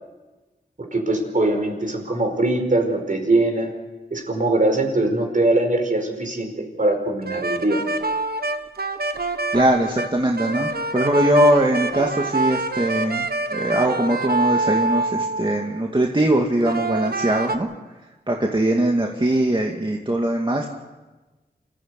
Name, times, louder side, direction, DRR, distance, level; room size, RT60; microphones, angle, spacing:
voice 1, 0.8-3.7 4.1-7.8, right 2 dB, 50° right, 3 dB, 4.8 m, -22 dB
sound 1, 7.2-15.8 16.6-17.6, right 3 dB, 70° right, 1.4 m, -26 dB
voice 2, 9.5-13.3 13.5-17.7 18.3-20.7, right 1 dB, 30° right, 0 dB, 2.2 m, -21 dB
27.0 x 15.0 x 8.2 m, 1.2 s
wide cardioid pair, 65°, 17 cm